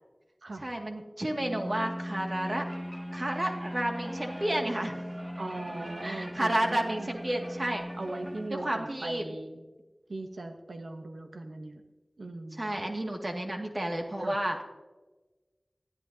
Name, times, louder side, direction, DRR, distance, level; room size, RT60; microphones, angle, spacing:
voice 1, 0.6-2.6 3.1-4.9 6.0-7.9 8.5-9.2 12.6-14.6, right 1 dB, 45° right, 2 dB, 2.1 m, -31 dB
sound 1, 1.4-8.5, equal, 15° right, 2.0 m, -39 dB
voice 2, 5.4-7.3 8.0-9.6 10.1-11.8 12.2-12.7 14.2-14.4, right 2 dB, 90° right, 5 dB, 0.9 m, -39 dB
20.0 x 14.0 x 2.8 m, 1.2 s
wide cardioid pair, 45°, 0 cm